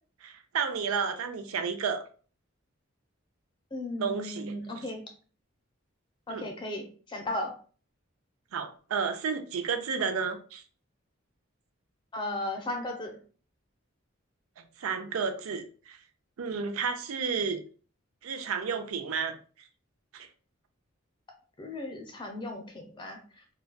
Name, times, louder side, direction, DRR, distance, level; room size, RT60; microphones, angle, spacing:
voice 1, 0.2-2.0 4.0-4.9 6.3-6.5 8.5-10.6 14.8-16.0 16.4-17.6 18.2-19.4 20.1-20.3, right 5 dB, 90° right, 7 dB, 0.5 m, -32 dB
voice 2, 3.7-5.0 6.3-7.5 12.1-13.1 21.6-23.2, left 1 dB, 20° left, 3 dB, 0.5 m, -35 dB
3.9 x 2.2 x 2.2 m, 0.40 s
head